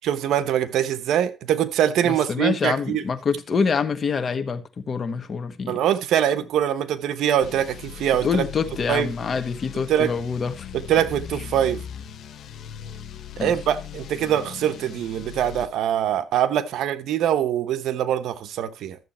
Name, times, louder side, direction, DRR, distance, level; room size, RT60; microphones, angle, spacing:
voice 1, 0.0-3.0 5.7-8.3 8.9-9.1 9.9-10.1 10.9-11.8 13.4-19.0, right 10 dB, 75° right, 1.1 m, -23 dB
voice 2, 2.0-5.8 8.2-10.7 13.4-13.5, left 5 dB, 40° left, 1.5 m, -26 dB
sound 1, 7.4-15.7, left 9 dB, 60° left, 1.3 m, -39 dB
12.5 x 7.5 x 4.3 m
cardioid pair, 105°, 0 cm